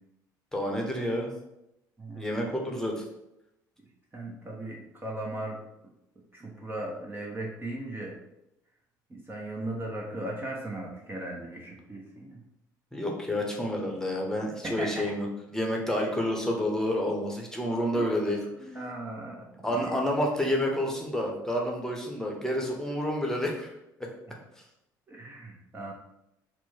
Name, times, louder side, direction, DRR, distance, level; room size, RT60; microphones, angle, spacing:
voice 1, 0.5-1.3 2.1-3.0 12.9-18.4 19.6-23.7, left 1 dB, 5° left, 0 dB, 1.1 m, -29 dB
voice 2, 2.0-2.4 4.1-5.6 6.3-8.2 9.1-12.4 14.6-15.0 16.0-16.1 17.8-20.0 25.1-25.9, right 1 dB, 20° right, -2 dB, 0.9 m, -38 dB
4.4 x 2.2 x 4.4 m, 0.87 s
figure-of-eight pair, 55°, 10 cm